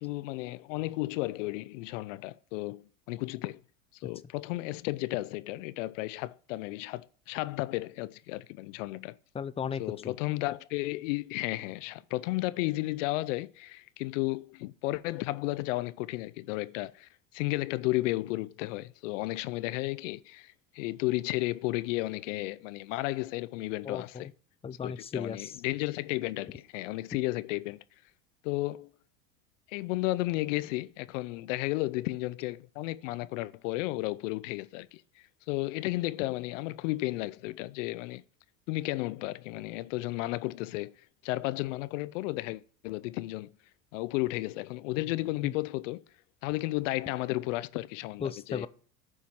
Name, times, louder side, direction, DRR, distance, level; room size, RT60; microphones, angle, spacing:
voice 1, 0.0-3.6 3.9-9.1 9.8-24.3 24.8-27.8 28.4-28.9 29.7-35.0 35.5-38.2 38.7-40.9 41.2-43.5 43.9-46.0 46.4-48.7, left 19 dB, 60° left, 0.6 m, -33 dB
voice 2, 9.3-10.1 23.9-24.3 24.6-25.5 45.4-45.5 48.2-48.7, left 7 dB, 15° left, 0.5 m, -36 dB
11.0 x 4.6 x 7.2 m
hypercardioid pair, 80°, 43 cm